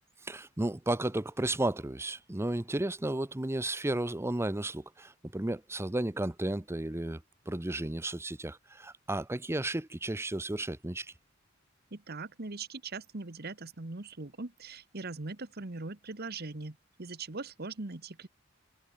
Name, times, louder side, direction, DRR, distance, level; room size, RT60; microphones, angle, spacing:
voice 1, 0.2-7.2 7.5-11.1, right 1 dB, 10° right, 0.7 m, -33 dB
voice 2, 11.9-18.3, right 3 dB, 50° right, 1.3 m, -41 dB
head